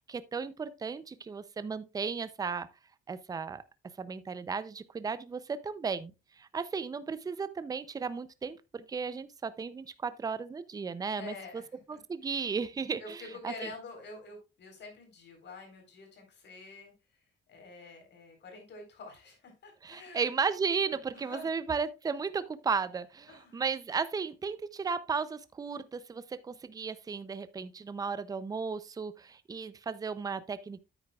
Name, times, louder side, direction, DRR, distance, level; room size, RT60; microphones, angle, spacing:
voice 1, 0.0-2.7 3.1-3.6 4.0-6.1 6.4-11.3 11.9-13.5 19.8-30.8, right 5 dB, 20° right, 0.5 m, -35 dB
voice 2, 11.1-12.0 13.0-16.9 17.5-20.3 20.9-21.5 23.3-23.6, left 3 dB, 60° left, 4.1 m, -47 dB
9.3 x 8.9 x 2.3 m
cardioid pair, 145°, 21 cm